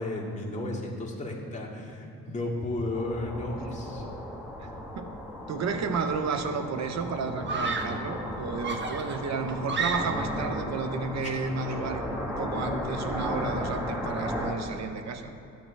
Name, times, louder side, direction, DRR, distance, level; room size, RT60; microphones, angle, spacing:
voice 1, 0.0-4.1 11.2-11.4, left 2 dB, 25° left, -3 dB, 2.2 m, -33 dB
sound 1, 2.9-14.5, left 1 dB, 10° right, 2.1 m, -35 dB
voice 2, 4.6-5.1 5.5-15.3, right 4 dB, 65° right, 7 dB, 1.0 m, -32 dB
Screaming, 7.4-8.1 8.6-10.4, right 4 dB, 40° right, 1.1 m, -32 dB
13.5 x 9.7 x 3.5 m, 2.7 s
cardioid pair, 90°, 30 cm